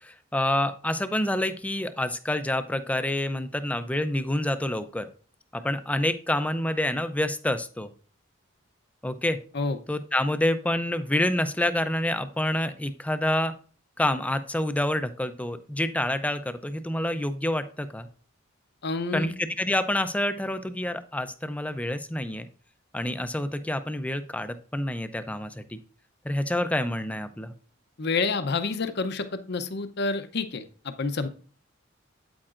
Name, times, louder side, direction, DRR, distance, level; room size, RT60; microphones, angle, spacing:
voice 1, 0.0-5.1 5.5-7.9 9.0-9.4 9.9-13.5 14.0-18.1 19.1-22.5 22.9-25.8 26.2-27.5, left 1 dB, 5° left, 11 dB, 0.5 m, -27 dB
voice 2, 18.8-19.3 28.0-31.3, left 4 dB, 55° left, 10 dB, 0.7 m, -28 dB
8.7 x 8.6 x 2.5 m, 0.41 s
head